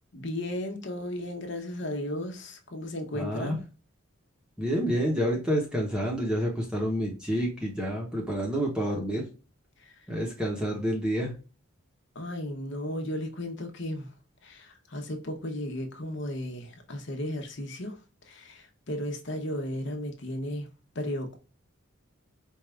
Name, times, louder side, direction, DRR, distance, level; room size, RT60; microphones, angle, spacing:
voice 1, 0.1-3.6 9.8-9.9 12.1-14.1 14.4-18.0 18.3-20.7 20.9-21.4, left 1 dB, 55° left, 0.9 m, -35 dB
voice 2, 3.1-3.6 4.6-9.2 10.1-11.3, equal, 5° right, 0.8 m, -28 dB
4.6 x 2.5 x 3.2 m
head